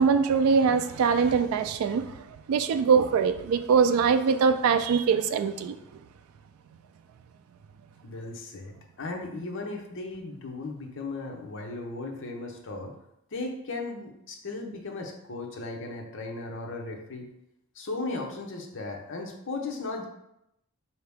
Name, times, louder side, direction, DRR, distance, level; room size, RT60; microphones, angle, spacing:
voice 1, 0.0-6.0, right 6 dB, 75° right, 9 dB, 0.3 m, -23 dB
voice 2, 8.0-12.9 13.3-17.3 17.7-20.0, left 3 dB, 60° left, 2 dB, 0.7 m, -36 dB
4.6 x 2.8 x 3.4 m, 0.81 s
head